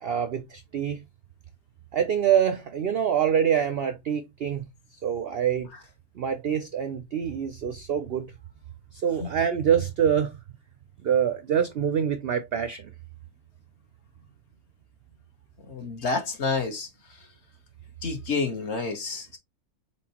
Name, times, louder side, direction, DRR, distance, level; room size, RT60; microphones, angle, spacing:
voice 1, 0.0-1.0 1.9-5.7 6.1-8.3 8.9-10.4 11.0-12.9, right 8 dB, 65° right, 0.6 m, -25 dB
voice 2, 15.7-16.9 18.0-19.4, left 4 dB, 50° left, 1.2 m, -29 dB
4.4 x 4.0 x 2.8 m
omnidirectional pair, 1.6 m